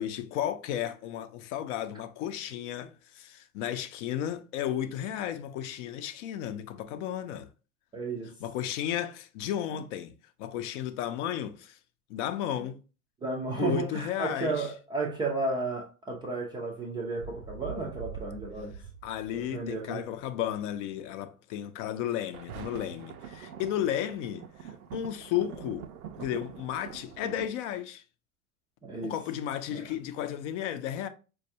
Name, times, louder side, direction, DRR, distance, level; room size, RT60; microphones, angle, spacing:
voice 1, 0.0-7.5 8.4-10.1 10.4-11.8 12.1-12.8 13.6-14.7 19.0-25.9 26.2-28.0 29.0-31.1, left 11 dB, 55° left, 0.5 m, -33 dB
voice 2, 7.9-8.3 13.2-18.7 19.3-20.1 28.8-29.2 29.7-29.9, right 3 dB, 10° right, 0.3 m, -33 dB
sound 1, 17.2-20.8 22.0-27.5, right 8 dB, 75° right, 0.6 m, -44 dB
4.4 x 2.3 x 2.7 m
hypercardioid pair, 90°, 44 cm